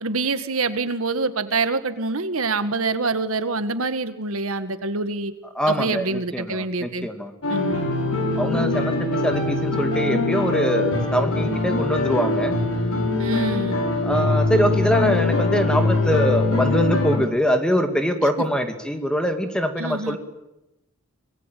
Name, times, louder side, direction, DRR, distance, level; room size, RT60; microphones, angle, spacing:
voice 1, 0.0-5.3 5.7-7.1 7.5-7.8 13.2-13.8 19.8-20.2, right 3 dB, 80° right, 11 dB, 1.6 m, -26 dB
voice 2, 5.5-7.3 8.4-12.6 14.0-20.2, equal, 5° left, 6 dB, 2.2 m, -23 dB
sound 1, 7.4-17.2, left 2 dB, 85° left, 7.3 m, -22 dB
24.5 x 21.5 x 9.1 m, 0.93 s
head